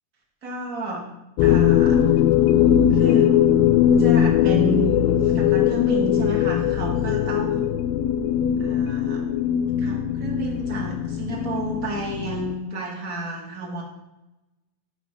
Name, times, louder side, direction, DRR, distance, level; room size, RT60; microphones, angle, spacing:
voice 1, 0.4-1.1 1.4-2.0 2.9-3.3 4.0-7.7 8.6-9.2 9.7-13.8, right 2 dB, 35° right, -1 dB, 1.4 m, -31 dB
sound 1, 1.4-12.6, left 10 dB, 85° left, 2.6 m, -20 dB
18.5 x 6.8 x 3.3 m, 1.0 s
omnidirectional pair, 4.6 m